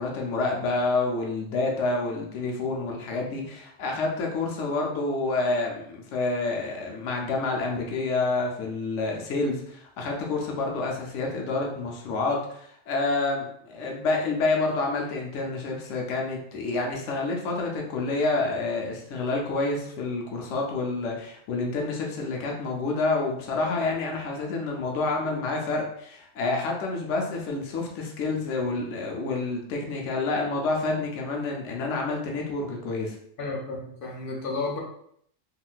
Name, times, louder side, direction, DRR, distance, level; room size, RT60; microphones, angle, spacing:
voice 1, 0.0-33.2, left 3 dB, 75° left, 0 dB, 1.0 m, -28 dB
voice 2, 33.4-34.8, left 3 dB, 55° left, -1 dB, 0.7 m, -32 dB
3.6 x 2.5 x 2.3 m, 0.68 s
omnidirectional pair, 1.3 m